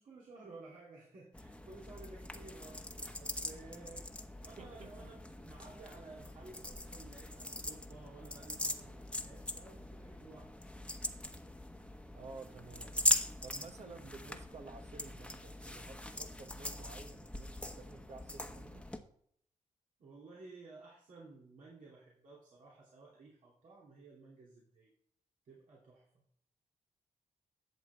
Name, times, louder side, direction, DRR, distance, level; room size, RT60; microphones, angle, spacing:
voice 1, 0.0-10.5 20.0-24.9 25.4-26.1, right 3 dB, 75° right, -5 dB, 2.8 m, -55 dB
sound 1, 1.3-19.0, left 1 dB, 10° left, 1.1 m, -41 dB
voice 2, 4.6-4.9 12.1-13.0 13.4-18.9, right 4 dB, 55° right, 5 dB, 1.1 m, -52 dB
11.0 x 7.5 x 3.4 m, 0.65 s
cardioid pair, 60°, 13 cm